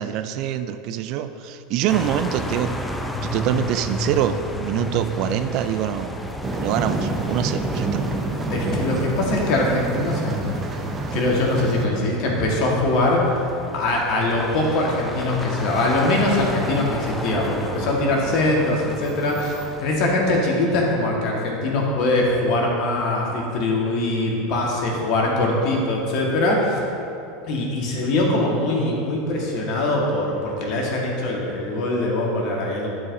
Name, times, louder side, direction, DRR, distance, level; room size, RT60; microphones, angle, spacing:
voice 1, 0.0-2.7 3.2-6.2 6.6-8.0, right 10 dB, 55° right, 10 dB, 0.4 m, -25 dB
sound 1, 1.9-20.2, left 1 dB, 10° left, 0.5 m, -33 dB
sound 2, 6.4-11.9, right 3 dB, 25° right, 0.7 m, -27 dB
voice 2, 8.5-10.5 11.1-13.4 13.7-26.8 27.5-32.9, left 2 dB, 55° left, -2 dB, 1.5 m, -22 dB
10.5 x 4.7 x 2.7 m, 2.7 s
hypercardioid pair, 85°, 0 cm